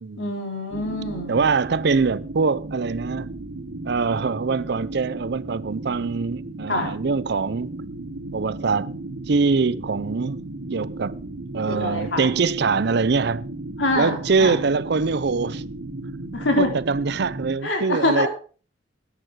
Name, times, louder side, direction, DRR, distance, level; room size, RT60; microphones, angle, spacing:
voice 1, 0.2-1.4 6.7-6.9 11.7-12.3 13.8-14.6 16.3-16.7 17.6-18.3, left 2 dB, 85° left, 3.6 m, -25 dB
sound 1, 0.7-17.6, right 2 dB, 90° right, 1.3 m, -35 dB
voice 2, 1.3-3.3 3.9-7.7 8.3-8.9 9.3-10.4 10.7-11.2 11.5-13.5 13.9-15.6 16.6-18.3, right 4 dB, 60° right, 0.6 m, -23 dB
11.0 x 10.0 x 4.7 m
head